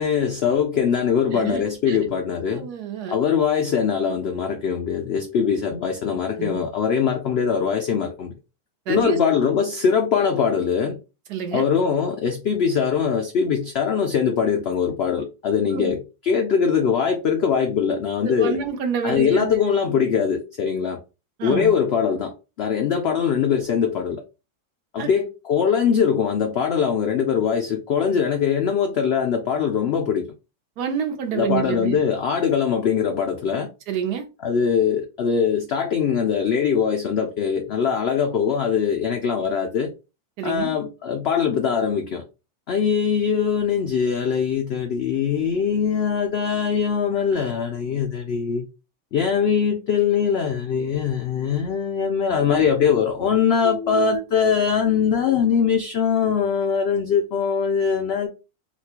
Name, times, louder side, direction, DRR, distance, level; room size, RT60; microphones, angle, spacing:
voice 1, 0.0-2.7 3.1-8.3 8.9-11.0 11.5-18.6 19.0-21.0 21.4-24.2 24.9-30.3 31.3-33.7 34.4-39.9 40.4-42.2 42.7-48.7 49.1-58.3, left 7 dB, 90° left, 0.5 m, -22 dB
voice 2, 2.6-3.2 6.4-6.7 8.9-9.2 11.3-11.7 15.7-15.9 18.2-19.5 21.4-21.7 25.0-25.1 30.8-32.0 33.9-34.2 40.4-40.7 53.6-54.2, right 7 dB, 90° right, 1.3 m, -28 dB
4.1 x 2.2 x 2.8 m
omnidirectional pair, 1.6 m